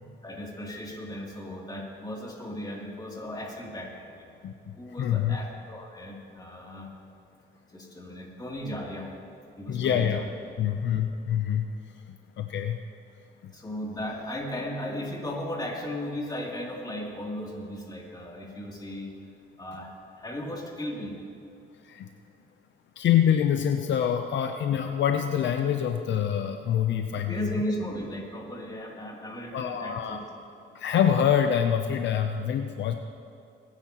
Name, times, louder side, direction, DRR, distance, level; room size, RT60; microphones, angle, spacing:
voice 1, 0.2-4.3 4.8-6.9 7.7-9.1 9.6-10.2 13.5-19.1 19.6-21.2 27.3-30.2, equal, 20° left, -2 dB, 3.0 m, -36 dB
voice 2, 4.4-5.4 9.7-10.2 10.6-11.7 12.1-12.8 13.4-13.5 21.8-22.1 23.0-27.4 29.5-30.2 30.7-32.9, left 9 dB, 65° left, 6 dB, 0.7 m, -26 dB
22.5 x 9.9 x 3.0 m, 2.7 s
cardioid pair, 90°, 20 cm